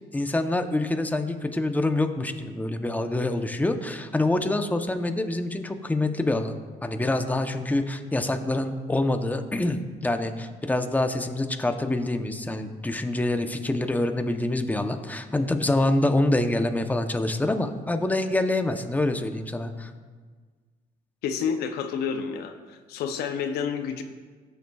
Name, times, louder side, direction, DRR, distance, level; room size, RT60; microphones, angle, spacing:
voice 1, 0.1-6.5 6.8-19.9, left 2 dB, 10° left, 7 dB, 0.8 m, -26 dB
voice 2, 21.2-24.0, left 7 dB, 85° left, 7 dB, 0.6 m, -29 dB
15.0 x 6.7 x 2.4 m, 1.5 s
supercardioid pair, 70°, 16 cm